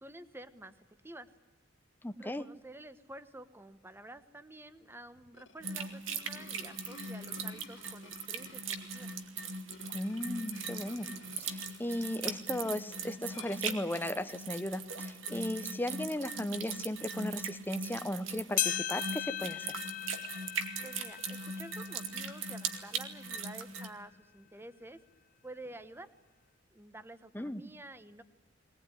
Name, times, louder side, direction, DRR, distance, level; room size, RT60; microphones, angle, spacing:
voice 1, 0.0-1.3 2.1-9.1 20.8-25.0 25.4-26.1 26.7-28.2, right 1 dB, 10° right, 12 dB, 1.1 m, -50 dB
voice 2, 2.0-2.5 9.9-11.1 11.4-19.7 27.3-27.6, left 1 dB, 10° left, 11 dB, 0.8 m, -36 dB
sound 1, 5.2-14.5, left 4 dB, 75° left, 1.7 m, -56 dB
sound 2, 5.6-23.9, right 4 dB, 80° right, 2.1 m, -40 dB
sound 3, 18.6-23.2 23.7-23.8 24.6-24.7 25.6-25.7, left 13 dB, 45° left, 0.8 m, -38 dB
20.5 x 19.5 x 9.9 m, 1.2 s
head